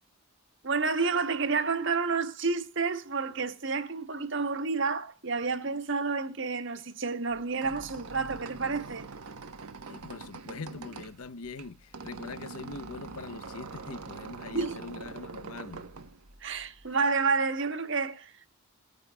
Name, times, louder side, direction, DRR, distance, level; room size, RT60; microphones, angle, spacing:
voice 1, 0.6-9.1 14.5-14.8 16.4-18.5, right 4 dB, 55° right, 1.3 m, -30 dB
Squeak, 7.3-16.9, right 4 dB, 90° right, 1.1 m, -44 dB
voice 2, 9.9-15.9, left 4 dB, 80° left, 0.8 m, -42 dB
21.5 x 9.2 x 2.3 m
head